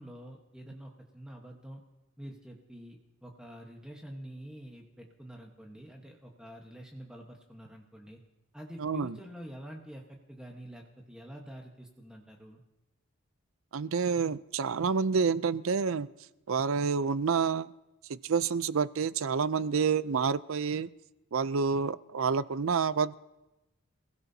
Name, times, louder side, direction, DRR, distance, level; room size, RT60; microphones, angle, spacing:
voice 1, 0.0-1.8 2.2-8.2 8.5-12.6, equal, 5° right, 0 dB, 1.2 m, -47 dB
voice 2, 8.8-9.2 13.7-16.1 16.5-17.7 18.3-20.9 21.3-23.1, right 5 dB, 70° right, 17 dB, 0.5 m, -28 dB
28.5 x 16.0 x 2.8 m, 1.0 s
head